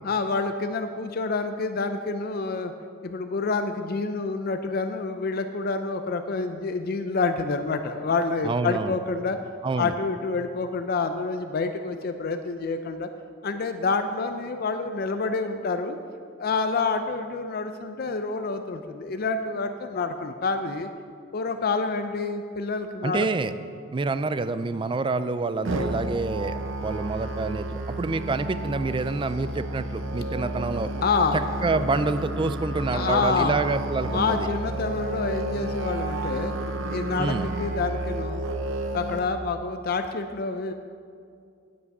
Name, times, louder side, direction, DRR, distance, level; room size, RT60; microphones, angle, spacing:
voice 1, 0.0-2.7 3.0-9.4 9.8-13.1 13.4-16.0 16.4-20.9 21.3-23.3 31.0-31.4 32.9-33.6 34.1-36.5 36.9-38.4 38.9-40.7, left 4 dB, 50° left, 8 dB, 0.5 m, -28 dB
voice 2, 8.4-8.9 9.6-9.9 23.0-23.5 23.9-30.9 31.6-34.5 37.2-37.5, right 3 dB, 25° right, 12 dB, 0.4 m, -27 dB
Musical instrument, 25.6-39.2, right 1 dB, 85° right, 0.7 m, -31 dB
9.3 x 8.6 x 5.4 m, 2.3 s
head